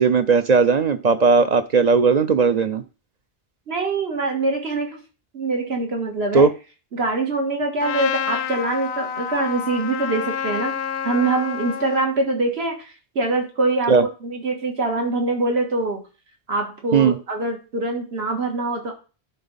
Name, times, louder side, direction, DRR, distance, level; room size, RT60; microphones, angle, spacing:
voice 1, 0.0-2.8 6.3-6.5 13.9-14.0 16.9-17.2, right 5 dB, 50° right, 0.6 m, -17 dB
voice 2, 3.7-5.0 5.3-6.5 6.9-10.7 11.0-16.0 16.5-18.9, right 3 dB, 80° right, 1.9 m, -24 dB
Trumpet, 7.8-12.1, left 8 dB, 80° left, 0.9 m, -28 dB
11.5 x 3.9 x 4.0 m
omnidirectional pair, 1.1 m